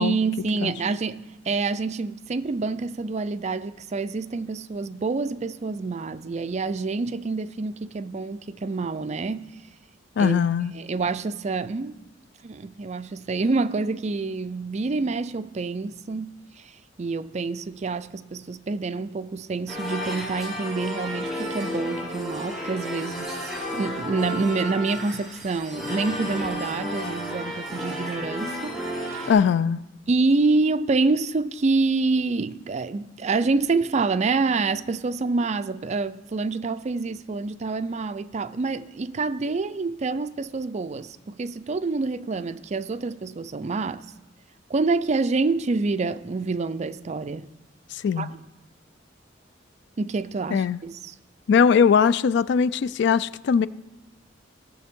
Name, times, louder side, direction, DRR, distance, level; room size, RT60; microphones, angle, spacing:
voice 1, 0.0-9.6 10.2-10.4 10.7-12.0 12.4-16.4 16.6-16.7 17.0-23.3 23.7-28.8 29.1-29.3 30.1-44.0 44.7-47.5 48.2-48.4 50.0-51.1, right 3 dB, 35° right, 0.4 m, -27 dB
voice 2, 10.2-10.7 29.3-29.8 47.9-48.3 50.5-50.8 51.5-53.7, left 6 dB, 65° left, 0.3 m, -20 dB
sound 1, 19.7-29.3, equal, ahead, 3.0 m, -32 dB
16.5 x 6.7 x 3.6 m
head